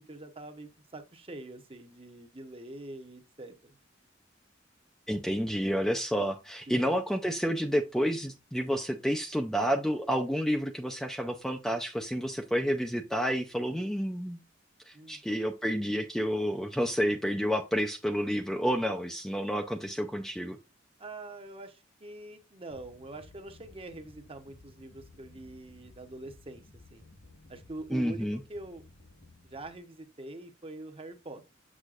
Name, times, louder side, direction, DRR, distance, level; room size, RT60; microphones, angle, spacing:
voice 1, 0.0-3.7 6.7-6.9 14.9-15.2 21.0-26.6 26.9-27.0 27.5-28.8 29.4-31.5, right 2 dB, 30° right, 0.9 m, -44 dB
voice 2, 5.1-14.4 14.9-20.6 27.9-28.4, equal, ahead, 0.4 m, -30 dB
sound 1, 22.7-29.8, left 2 dB, 60° left, 1.5 m, -56 dB
6.6 x 6.3 x 2.4 m
head